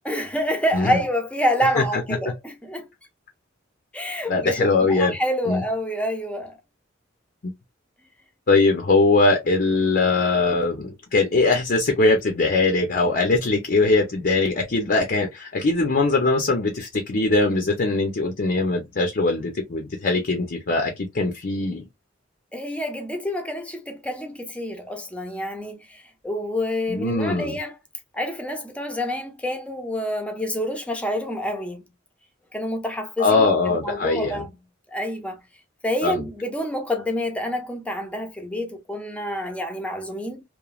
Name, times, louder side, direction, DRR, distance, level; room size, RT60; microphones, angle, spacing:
voice 1, 0.0-2.9 3.9-6.6 22.5-27.8 28.1-31.8 32.5-34.6 34.9-35.4 35.8-40.4, equal, 5° left, 0.6 m, -27 dB
voice 2, 4.3-5.1 5.5-5.6 7.4-7.5 8.5-21.8 26.9-27.6 33.2-34.4 36.0-36.1, left 3 dB, 50° left, 0.6 m, -21 dB
3.0 x 2.1 x 2.3 m
head